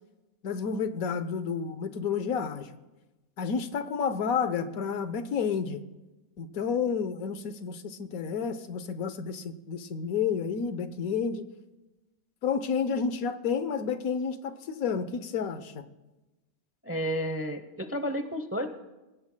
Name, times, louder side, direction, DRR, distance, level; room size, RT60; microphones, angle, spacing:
voice 1, 0.4-2.7 3.4-5.8 6.4-11.4 12.4-15.8, left 6 dB, 75° left, 11 dB, 1.3 m, -30 dB
voice 2, 16.8-18.7, equal, 15° right, 8 dB, 0.5 m, -31 dB
27.5 x 17.0 x 2.2 m, 1.1 s
omnidirectional pair, 1.5 m